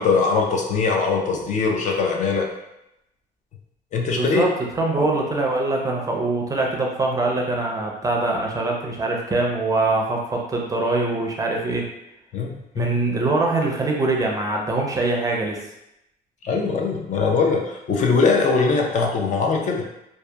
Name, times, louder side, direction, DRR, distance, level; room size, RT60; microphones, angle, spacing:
voice 1, 0.0-2.5 3.9-4.4 5.0-5.1 12.3-12.9 16.4-19.8, left 4 dB, 45° left, 1 dB, 0.4 m, -21 dB
voice 2, 4.2-11.8 12.8-15.6, right 2 dB, 20° right, 0 dB, 0.4 m, -23 dB
2.7 x 2.1 x 2.2 m, 0.84 s
cardioid pair, 110°, 17 cm